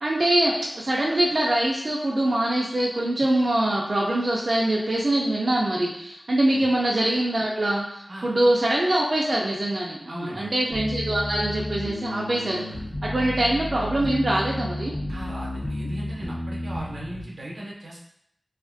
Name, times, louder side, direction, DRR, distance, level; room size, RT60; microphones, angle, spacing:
voice 1, 0.0-12.6 13.0-14.9, right 1 dB, 55° right, -4 dB, 0.4 m, -23 dB
voice 2, 10.1-10.5 13.2-13.3 15.1-18.0, right 1 dB, 90° right, -4 dB, 0.7 m, -37 dB
sound 1, 10.7-17.2, left 1 dB, 50° left, 0.7 m, -32 dB
3.0 x 2.4 x 2.4 m, 0.73 s
wide cardioid pair, 60°, 0 cm